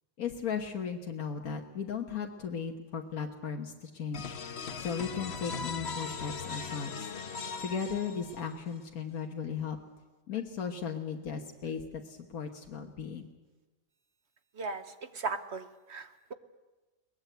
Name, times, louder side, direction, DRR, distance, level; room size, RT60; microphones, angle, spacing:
voice 1, 0.2-4.4 4.7-7.1 7.6-9.8 10.3-13.2, left 6 dB, 90° left, 2 dB, 1.7 m, -36 dB
sound 1, 4.1-8.7, left 5 dB, 50° left, 1.3 m, -39 dB
voice 2, 15.1-16.3, right 4 dB, 55° right, 10 dB, 1.2 m, -37 dB
22.0 x 19.5 x 8.0 m, 1.2 s
omnidirectional pair, 1.5 m